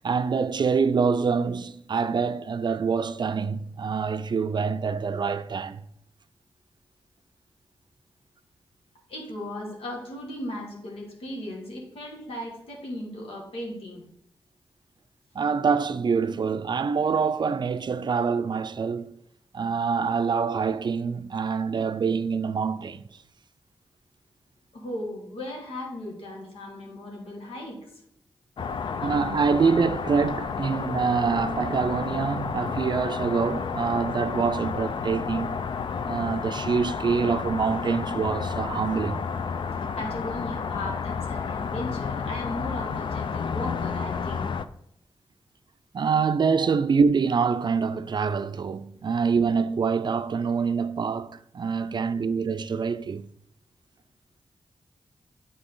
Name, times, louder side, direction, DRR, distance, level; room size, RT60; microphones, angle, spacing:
voice 1, 0.0-5.8 15.3-19.2 19.5-23.1 29.0-35.6 36.0-39.2 45.9-53.3, right 5 dB, 50° right, 0.4 m, -25 dB
voice 2, 9.1-14.0 24.7-28.0 40.0-44.5 46.6-46.7, left 1 dB, 90° left, 1.8 m, -36 dB
sound 1, 28.6-44.6, left 6 dB, 60° left, 0.4 m, -31 dB
8.7 x 3.9 x 3.9 m
cardioid pair, 65°, 9 cm